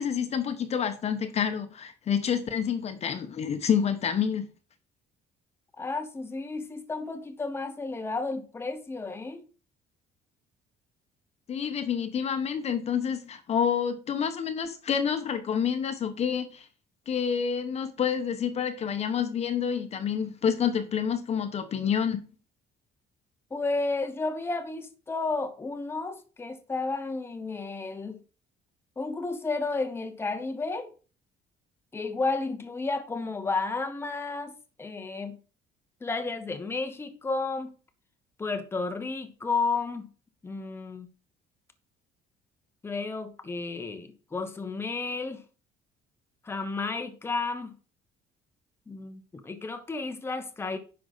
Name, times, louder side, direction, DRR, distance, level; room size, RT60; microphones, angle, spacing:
voice 1, 0.0-4.5 11.5-16.6 17.1-22.2, left 7 dB, 35° left, 1.1 m, -28 dB
voice 2, 5.8-9.4 23.5-28.2 29.0-30.9 31.9-35.4 36.0-37.7 38.4-40.1 40.4-41.1 42.8-45.4 46.4-47.8 48.9-50.8, left 3 dB, 10° left, 0.9 m, -32 dB
10.0 x 5.8 x 4.1 m
cardioid pair, 170°, 19 cm